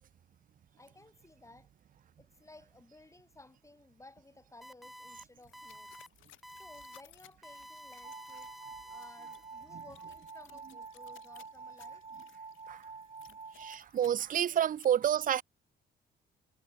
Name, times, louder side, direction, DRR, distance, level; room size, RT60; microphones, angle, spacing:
voice 1, 0.8-1.7 2.2-5.9 6.5-8.6 8.9-12.0 14.2-14.3, left 2 dB, 15° left, 7.0 m, -57 dB
sound 1, 4.6-5.2 5.5-6.1 6.4-7.0 7.4-9.7, equal, ahead, 1.4 m, -51 dB
sound 2, 5.4-14.9, left 15 dB, 90° left, 5.3 m, -62 dB
sound 3, 8.0-13.8, right 4 dB, 30° right, 1.4 m, -48 dB
voice 2, 13.6-15.4, right 10 dB, 45° right, 0.5 m, -29 dB
cardioid pair, 90°, 20 cm